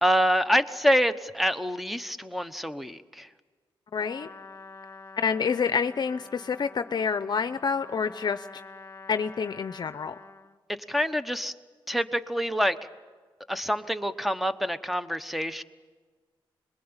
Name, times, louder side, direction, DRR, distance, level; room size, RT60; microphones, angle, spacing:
voice 1, 0.0-3.3 10.9-11.5 11.9-12.8 13.5-15.6, equal, ahead, 11 dB, 1.1 m, -26 dB
voice 2, 3.9-4.3 5.2-8.6 9.1-10.2, left 6 dB, 50° left, 11 dB, 0.7 m, -28 dB
Trumpet, 4.0-10.6, left 3 dB, 30° left, 2.0 m, -47 dB
26.5 x 21.5 x 8.9 m, 1.4 s
cardioid pair, 90°, 9 cm